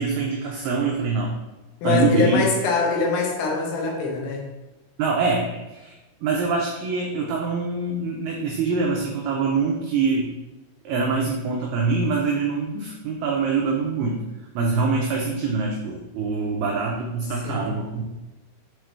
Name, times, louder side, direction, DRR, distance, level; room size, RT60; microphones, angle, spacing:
voice 1, 0.0-1.3 1.8-2.4 5.0-5.9 6.2-10.3 10.8-14.2 14.6-18.0, right 4 dB, 85° right, -1 dB, 2.2 m, -24 dB
voice 2, 1.8-4.5 14.9-15.1 17.4-17.7, left 3 dB, 85° left, 0 dB, 3.5 m, -23 dB
7.9 x 3.8 x 3.2 m, 1.1 s
omnidirectional pair, 5.3 m